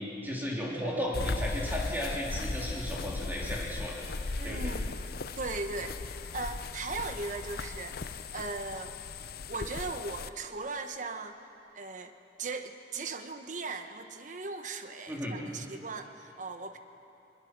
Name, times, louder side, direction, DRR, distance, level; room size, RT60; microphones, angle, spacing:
voice 1, 0.0-4.0 4.4-4.7 15.1-15.4, equal, 10° right, -4 dB, 3.3 m, -35 dB
sound 1, 1.1-10.3, left 3 dB, 55° left, 0.6 m, -37 dB
voice 2, 4.4-5.0 5.4-6.0 6.3-8.9 9.5-11.4 11.7-12.1 12.4-16.8, right 3 dB, 45° right, 7 dB, 1.1 m, -38 dB
21.5 x 21.0 x 6.1 m, 3.0 s
head